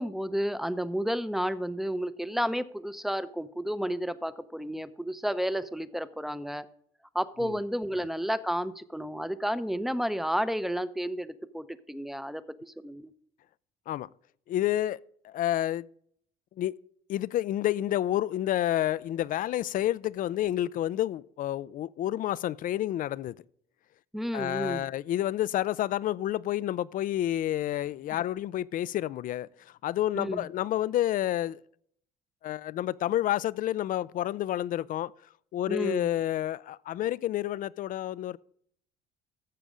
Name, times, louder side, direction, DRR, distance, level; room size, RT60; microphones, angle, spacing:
voice 1, 0.0-6.6 7.1-13.1 24.1-24.9 30.1-30.5 35.7-36.1, equal, ahead, 0.6 m, -31 dB
voice 2, 14.5-15.0 15.2-15.9 16.6-16.7 17.1-23.4 24.3-31.6 32.4-35.1 35.5-38.4, left 13 dB, 55° left, 0.4 m, -29 dB
12.5 x 7.3 x 5.0 m
cardioid pair, 110°, 17 cm